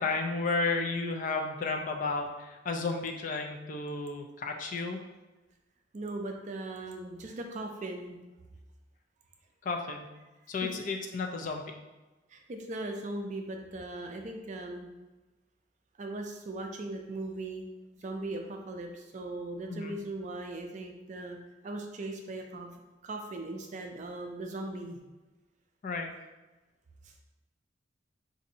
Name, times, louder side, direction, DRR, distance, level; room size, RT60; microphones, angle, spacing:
voice 1, 0.0-5.0 9.6-10.1 10.5-11.8 19.7-19.9 25.8-26.1, left 3 dB, 45° left, 3 dB, 0.4 m, -32 dB
voice 2, 5.9-8.2 10.6-10.9 12.3-14.9 16.0-17.7 18.0-21.4 21.6-22.7 23.0-25.0 27.0-27.1, right 2 dB, 40° right, 3 dB, 0.4 m, -39 dB
4.0 x 2.6 x 2.7 m, 1.1 s
head